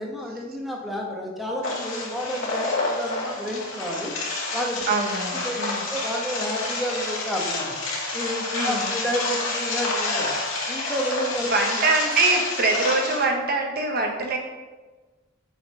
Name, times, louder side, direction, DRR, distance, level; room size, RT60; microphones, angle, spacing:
voice 1, 0.0-4.1 4.5-4.9 5.4-5.6 5.9-7.8 8.1-10.3 10.7-11.6, equal, ahead, -3 dB, 1.4 m, -30 dB
sound 1, 1.6-13.2, left 2 dB, 70° left, 2.3 m, -29 dB
voice 2, 4.9-5.8 8.5-8.9 11.5-14.4, right 3 dB, 50° right, 2 dB, 1.3 m, -24 dB
6.8 x 5.7 x 5.5 m, 1.3 s
head